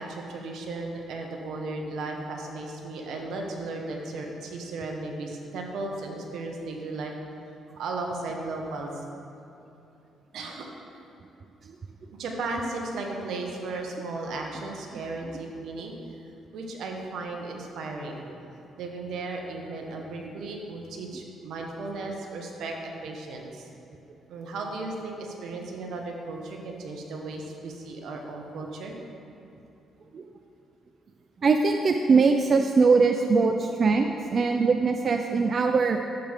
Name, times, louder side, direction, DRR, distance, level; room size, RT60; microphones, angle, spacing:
voice 1, 0.0-7.1 7.8-8.9 10.3-10.7 12.2-15.9 16.5-18.3 18.8-23.7 24.3-29.0 33.1-33.3 33.6-33.7, right 3 dB, 75° right, 1 dB, 1.4 m, -35 dB
voice 2, 31.4-36.0, right 4 dB, 45° right, 5 dB, 0.5 m, -21 dB
12.0 x 8.3 x 3.6 m, 2.9 s
cardioid pair, 90°, 0 cm